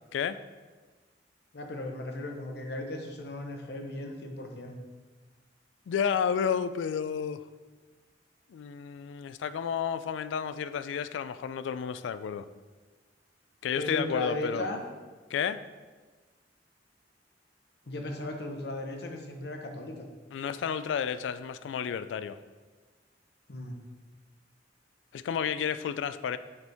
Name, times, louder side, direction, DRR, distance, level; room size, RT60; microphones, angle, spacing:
voice 1, 1.5-4.7 13.8-14.8 17.9-20.1 23.5-23.8, left 1 dB, 60° left, 3 dB, 0.8 m, -36 dB
voice 2, 5.9-7.4 8.5-12.5 13.6-14.7 15.3-15.6 20.3-22.4 25.1-26.4, left 7 dB, 85° left, 14 dB, 0.3 m, -31 dB
6.7 x 4.4 x 3.5 m, 1.3 s
head